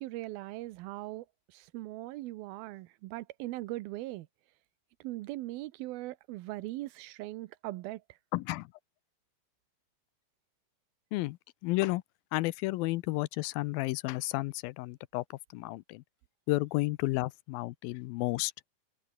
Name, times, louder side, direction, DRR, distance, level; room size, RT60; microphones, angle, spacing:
voice 1, 0.0-4.3 5.0-8.0, right 17 dB, 85° right, 2.6 m, -40 dB
voice 2, 8.3-8.7 11.1-11.4 11.6-12.0 12.3-15.2 15.5-16.0 16.5-18.5, left 20 dB, 85° left, 2.4 m, -32 dB
omnidirectional pair, 4.3 m